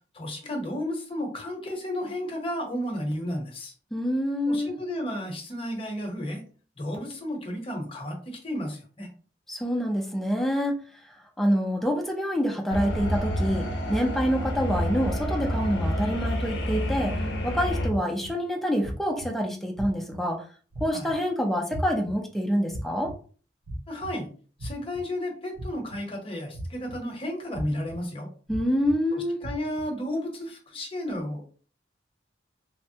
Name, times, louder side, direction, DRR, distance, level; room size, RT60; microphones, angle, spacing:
voice 1, 0.1-3.7 4.5-6.4 6.8-9.1 20.9-21.1 23.9-24.3 24.6-28.3 29.1-31.6, left 1 dB, 30° left, 2 dB, 0.8 m, -33 dB
voice 2, 3.9-4.7 9.5-10.8 11.4-17.1 17.4-20.4 20.8-23.1 28.5-29.4, equal, ahead, 0 dB, 0.4 m, -26 dB
sound 1, 12.7-17.9, equal, 70° left, 0.5 m, -28 dB
sound 2, 18.2-18.3 18.8-19.3 19.8-20.2 20.7-21.1 21.7-22.1 22.7-23.1 23.6-24.1 24.6-25.0 25.5-26.0 26.5-27.0 27.5-28.0 28.5-28.9 29.4-29.8, right 1 dB, 75° right, 0.6 m, -36 dB
3.3 x 2.1 x 2.7 m, 0.41 s
head